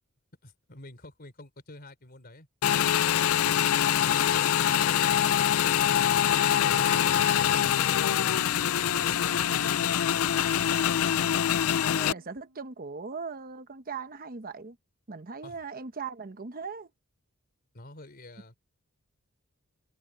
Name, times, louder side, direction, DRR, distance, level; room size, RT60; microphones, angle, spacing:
voice 1, 0.4-2.5 6.7-9.8 15.4-15.6 17.7-18.6, left 1 dB, 45° left, 3.6 m, -48 dB
Motorcycle / Engine, 2.6-12.1, left 10 dB, 75° left, 0.4 m, -24 dB
Organ, 6.3-12.8, right 1 dB, 85° right, 1.0 m, -50 dB
voice 2, 11.1-11.6 11.9-14.8 15.1-16.9, right 5 dB, 45° right, 1.0 m, -39 dB
head